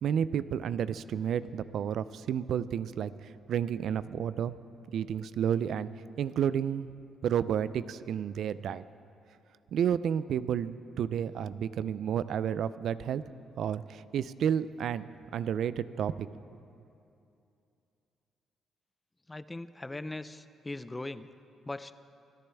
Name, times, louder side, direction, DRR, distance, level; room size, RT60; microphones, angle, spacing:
voice 1, 0.0-4.5 4.9-5.9 6.2-6.9 7.2-8.8 9.7-13.2 13.6-16.3, right 8 dB, 70° right, 15 dB, 0.4 m, -31 dB
voice 2, 19.3-21.3 21.7-21.9, left 2 dB, 15° left, 14 dB, 0.4 m, -39 dB
24.5 x 10.0 x 3.4 m, 2.7 s
cardioid pair, 90°, 0 cm